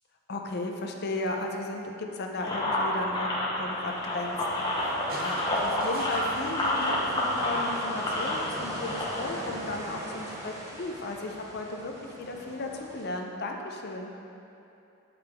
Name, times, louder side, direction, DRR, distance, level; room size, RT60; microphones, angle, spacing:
voice 1, 0.3-14.1, left 2 dB, 50° left, 2 dB, 0.5 m, -35 dB
sound 1, 2.4-9.3, left 1 dB, 20° left, 0.8 m, -29 dB
sound 2, 3.7-13.1, right 1 dB, 15° right, 0.7 m, -41 dB
sound 3, 5.1-8.4 9.7-9.8, right 1 dB, 45° right, 0.7 m, -42 dB
6.8 x 4.9 x 3.5 m, 2.9 s
head